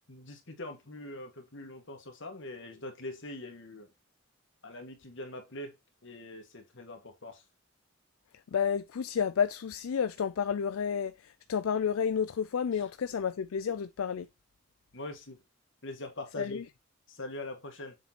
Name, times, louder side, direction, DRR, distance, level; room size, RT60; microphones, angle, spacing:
voice 1, 0.1-3.9 4.6-5.8 6.0-7.4 12.7-12.8 14.9-15.4 15.8-16.6 17.1-18.0, left 1 dB, 60° left, 1.9 m, -43 dB
voice 2, 8.5-14.3 16.4-16.6, left 7 dB, 80° left, 0.4 m, -31 dB
7.4 x 4.3 x 4.1 m
head